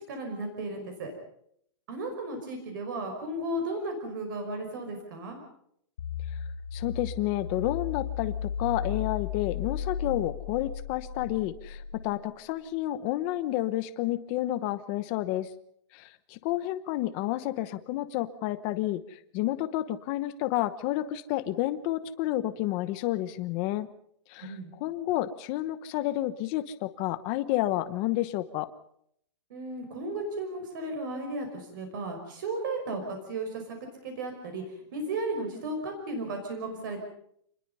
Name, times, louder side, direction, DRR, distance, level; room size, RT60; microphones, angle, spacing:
voice 1, 0.1-1.1 1.9-5.4 24.4-24.7 29.5-33.8 34.0-34.6 34.9-37.0, right 2 dB, 40° right, 4 dB, 5.6 m, -34 dB
Bass Drop Huge, 6.0-12.2, left 7 dB, 90° left, 3.3 m, -35 dB
voice 2, 6.7-15.5 15.9-23.9 24.3-24.5 24.8-28.7, left 15 dB, 20° left, 13 dB, 1.0 m, -30 dB
27.5 x 21.0 x 5.6 m, 0.69 s
hypercardioid pair, 180°, 16 cm